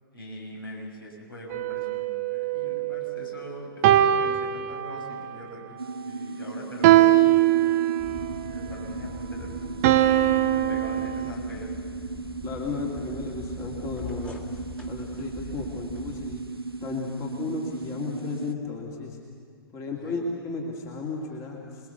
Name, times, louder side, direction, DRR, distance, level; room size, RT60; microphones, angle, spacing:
voice 1, 0.1-7.8 8.5-10.0 10.4-11.7 19.9-20.2, equal, 70° left, 0 dB, 6.5 m, -42 dB
sound 1, 1.5-3.2 3.8-5.3 6.8-8.3 9.8-11.3, right 13 dB, 40° right, 0.9 m, -21 dB
sound 2, 5.8-18.5, right 3 dB, 85° right, 0.7 m, -36 dB
sound 3, 8.0-16.4, left 1 dB, 5° left, 2.1 m, -42 dB
voice 2, 12.4-16.4 16.8-19.2 19.7-21.9, left 4 dB, 25° left, -1 dB, 2.7 m, -34 dB
27.5 x 21.0 x 7.0 m, 2.2 s
figure-of-eight pair, 110°, 12 cm